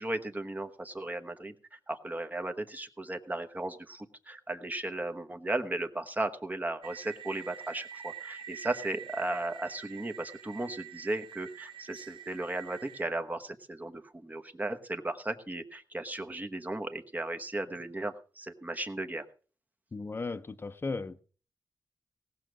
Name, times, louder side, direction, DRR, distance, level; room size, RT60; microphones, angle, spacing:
voice 1, 0.0-19.2, right 2 dB, 20° right, 1.1 m, -36 dB
sound 1, 6.8-13.0, right 8 dB, 90° right, 1.0 m, -46 dB
voice 2, 19.9-21.2, left 3 dB, 25° left, 0.8 m, -36 dB
18.0 x 6.5 x 6.1 m
wide cardioid pair, 140°, 8 cm